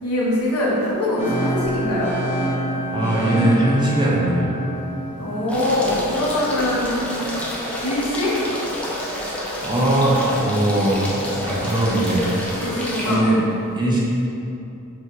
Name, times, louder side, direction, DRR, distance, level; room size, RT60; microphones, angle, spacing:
voice 1, 0.0-2.1 5.2-7.3 7.8-8.3 12.6-13.3, left 1 dB, 70° left, -6 dB, 1.4 m, -23 dB
sound 1, 1.2-7.1, right 1 dB, 30° left, 1.2 m, -27 dB
voice 2, 2.9-4.5 9.6-11.0 11.3-12.3 13.1-13.4 13.7-14.0, right 1 dB, 20° right, -6 dB, 0.9 m, -20 dB
sound 2, 5.5-13.2, left 1 dB, 5° left, 0.8 m, -29 dB
6.1 x 3.2 x 4.7 m, 2.8 s
head